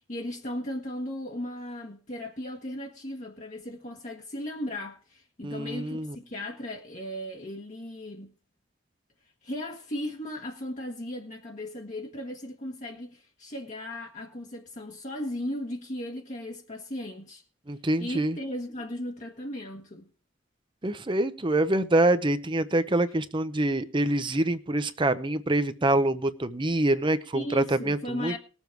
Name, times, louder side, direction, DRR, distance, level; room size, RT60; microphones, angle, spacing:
voice 1, 0.0-8.3 9.4-17.4 18.0-20.1 27.3-28.4, left 1 dB, 40° left, 1.4 m, -36 dB
voice 2, 5.4-6.2 17.7-18.4 20.8-28.3, right 1 dB, 25° right, 0.7 m, -25 dB
19.5 x 7.2 x 4.6 m
head